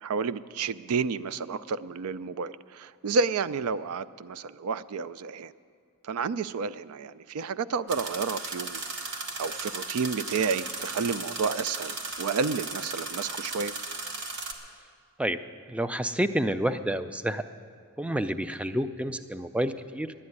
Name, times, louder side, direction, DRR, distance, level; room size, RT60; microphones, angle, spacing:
voice 1, 0.0-5.5 6.0-8.8 9.4-13.7, right 5 dB, 85° right, 16 dB, 0.4 m, -30 dB
sound 1, 7.9-14.5, right 3 dB, 55° right, 1.3 m, -36 dB
voice 2, 15.7-17.4 18.0-20.1, right 1 dB, 5° right, 11 dB, 0.4 m, -29 dB
11.0 x 8.8 x 9.6 m, 2.1 s
head